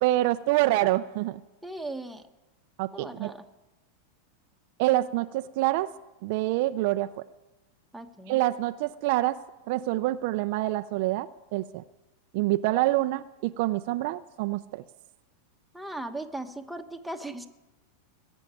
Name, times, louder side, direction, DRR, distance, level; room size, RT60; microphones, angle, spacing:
voice 1, 0.0-1.4 2.8-3.3 4.8-5.9 6.2-7.1 8.3-9.4 9.7-11.8 12.3-14.8, right 16 dB, 55° right, 11 dB, 0.5 m, -26 dB
voice 2, 1.6-2.2 2.9-3.5 7.9-8.4 15.7-17.5, right 2 dB, ahead, 3 dB, 1.2 m, -38 dB
19.5 x 7.2 x 9.1 m, 1.0 s
supercardioid pair, 135°, 0 cm